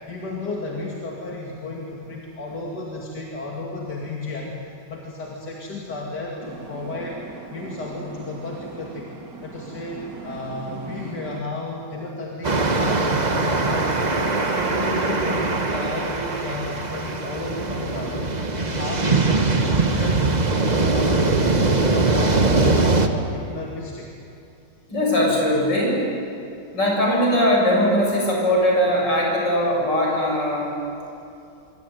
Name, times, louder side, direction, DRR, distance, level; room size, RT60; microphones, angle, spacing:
voice 1, 0.1-4.6 4.9-7.2 7.5-9.1 9.4-13.9 14.5-20.2 20.6-24.1, left 2 dB, 70° left, -2 dB, 3.1 m, -33 dB
sound 1, 6.4-11.4, right 4 dB, 75° right, 2.8 m, -39 dB
sound 2, 12.4-23.1, right 3 dB, 25° right, 1.4 m, -21 dB
voice 2, 24.9-26.1 26.7-30.7, equal, 90° left, -2 dB, 8.1 m, -20 dB
25.5 x 24.0 x 9.3 m, 2.7 s
omnidirectional pair, 1.9 m